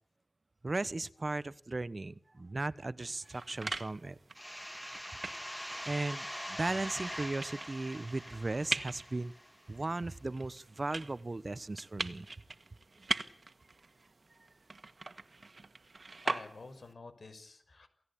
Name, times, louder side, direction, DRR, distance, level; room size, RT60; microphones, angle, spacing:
voice 1, 0.6-4.2 5.8-9.3 9.7-12.3 13.0-13.1, right 2 dB, 45° right, 16 dB, 1.1 m, -37 dB
sound 1, 3.0-16.9, right 3 dB, 60° right, 1.9 m, -42 dB
sound 2, 4.3-9.8, equal, 5° left, 2.3 m, -43 dB
voice 2, 16.2-17.9, left 3 dB, 70° left, 10 dB, 5.8 m, -49 dB
29.0 x 17.5 x 8.7 m, 0.66 s
wide cardioid pair, 70°, 0 cm